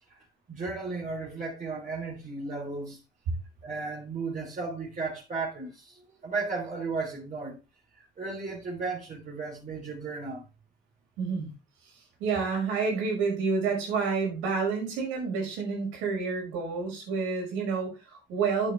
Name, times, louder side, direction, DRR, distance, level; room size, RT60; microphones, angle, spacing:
voice 1, 0.5-3.0 3.6-7.6 8.0-10.4, right 4 dB, 40° right, 3.7 m, -35 dB
voice 2, 11.2-11.5 12.2-18.7, right 5 dB, 85° right, 5.6 m, -29 dB
9.3 x 8.4 x 3.5 m
supercardioid pair, 85°, 20 cm